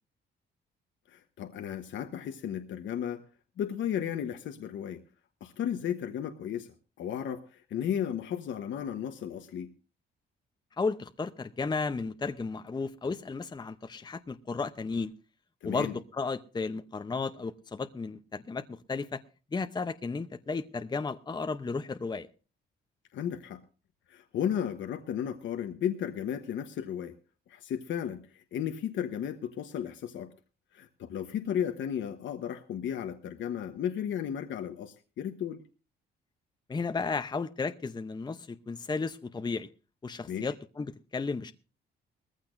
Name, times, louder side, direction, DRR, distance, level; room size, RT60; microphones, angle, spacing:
voice 1, 1.1-3.2 3.6-5.0 5.4-9.7 15.6-16.0 23.1-23.6 24.1-27.1 27.5-30.3 30.7-35.6 40.3-40.5, left 9 dB, 75° left, 1.1 m, -34 dB
voice 2, 10.8-15.1 15.6-19.2 19.5-22.3 36.7-39.7 40.0-41.5, left 4 dB, 20° left, 0.7 m, -34 dB
19.5 x 15.0 x 2.6 m
cardioid pair, 90°, 20 cm